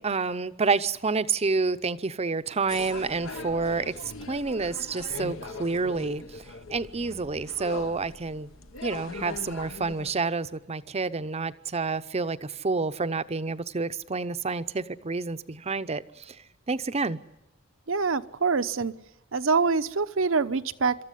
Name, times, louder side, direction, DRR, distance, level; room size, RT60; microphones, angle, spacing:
voice 1, 0.0-8.5 8.8-17.2, right 4 dB, 30° right, 12 dB, 0.7 m, -29 dB
sound 1, 2.7-10.1, left 3 dB, 75° left, 1.2 m, -41 dB
voice 2, 17.9-18.9 19.3-21.0, right 4 dB, 70° right, 12 dB, 0.8 m, -25 dB
26.5 x 13.5 x 9.9 m, 0.94 s
head